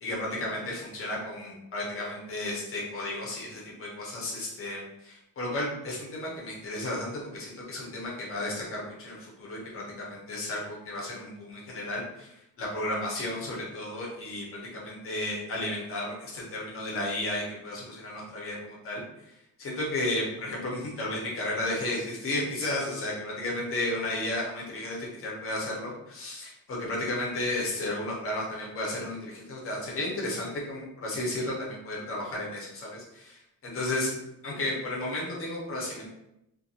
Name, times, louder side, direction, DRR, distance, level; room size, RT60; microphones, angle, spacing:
voice 1, 0.0-19.0 19.6-34.1 34.4-36.1, left 1 dB, 40° left, -3 dB, 0.7 m, -33 dB
2.4 x 2.3 x 2.7 m, 0.83 s
wide cardioid pair, 180°, 35 cm